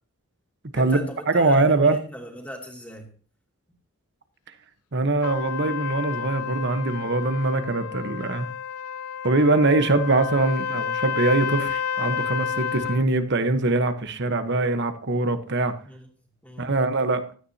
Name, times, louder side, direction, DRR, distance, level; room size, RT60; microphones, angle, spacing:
voice 1, 0.7-3.1 15.8-16.1 16.4-16.7, equal, 5° left, 1 dB, 2.5 m, -39 dB
voice 2, 1.3-2.0 4.9-8.5 9.2-15.7 16.6-17.2, right 2 dB, 50° right, 9 dB, 1.1 m, -22 dB
Trumpet, 5.2-13.0, left 8 dB, 90° left, 0.6 m, -30 dB
16.0 x 13.0 x 2.8 m, 0.41 s
head